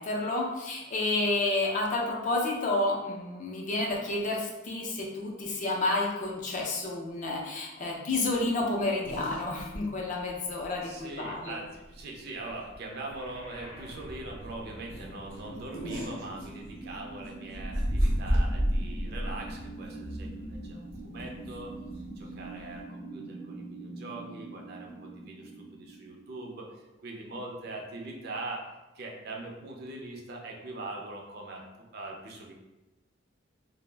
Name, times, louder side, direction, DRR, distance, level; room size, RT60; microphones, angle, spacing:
voice 1, 0.0-11.6, left 2 dB, 40° left, -1 dB, 0.4 m, -30 dB
sound 1, 9.0-9.8 10.2-10.3 10.6-10.7 11.9-12.2 12.5-12.7 13.2-13.3 13.6-13.7 14.1-14.3 14.8-17.1 17.5-22.8, equal, 75° right, 0.7 m, -32 dB
voice 2, 10.8-21.7 22.1-28.7 28.9-32.5, right 2 dB, 50° right, 0 dB, 0.4 m, -42 dB
sound 2, 12.8-26.8, right 2 dB, 75° left, 0.6 m, -44 dB
2.4 x 2.0 x 3.2 m, 1.0 s
head